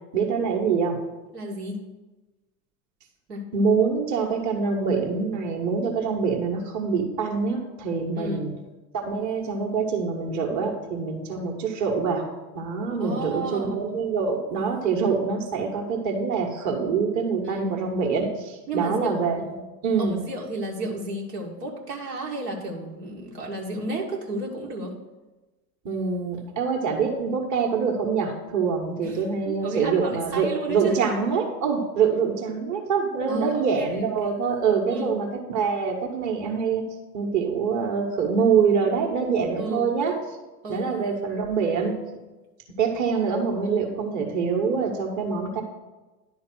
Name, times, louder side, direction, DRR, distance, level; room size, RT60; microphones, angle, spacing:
voice 1, 0.1-1.0 3.5-8.5 8.9-12.2 12.5-19.4 19.8-20.2 25.8-36.8 37.1-40.1 40.7-41.9 42.8-45.6, right 5 dB, 35° right, 0 dB, 1.6 m, -25 dB
voice 2, 1.3-1.8 3.3-3.5 8.2-8.5 13.0-14.0 17.4-17.7 18.7-19.6 20.0-25.0 29.0-31.0 33.3-34.1 34.9-35.1 39.6-39.9 40.6-40.9, right 2 dB, 75° right, -2 dB, 1.8 m, -32 dB
10.5 x 4.0 x 6.2 m, 1.1 s
figure-of-eight pair, 80°, 49 cm